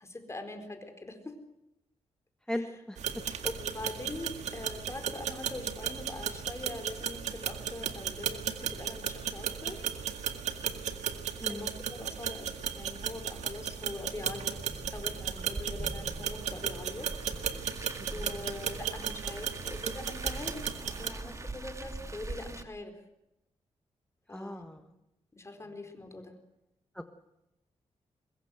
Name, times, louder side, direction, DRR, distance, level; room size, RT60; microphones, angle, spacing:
voice 1, 0.0-1.4 2.5-2.7 3.4-9.9 11.5-22.9 24.3-24.7 25.3-26.3, left 2 dB, 25° left, 7 dB, 4.4 m, -43 dB
voice 2, 2.5-3.0 11.4-11.7 18.1-18.2 24.3-24.8 26.9-27.1, left 1 dB, 5° left, 6 dB, 1.4 m, -37 dB
sound 1, 3.0-21.1, right 8 dB, 90° right, 2.0 m, -35 dB
Car, 14.5-22.6, right 2 dB, 25° right, 2.0 m, -42 dB
23.0 x 21.5 x 7.8 m, 0.89 s
cardioid pair, 95°, 12 cm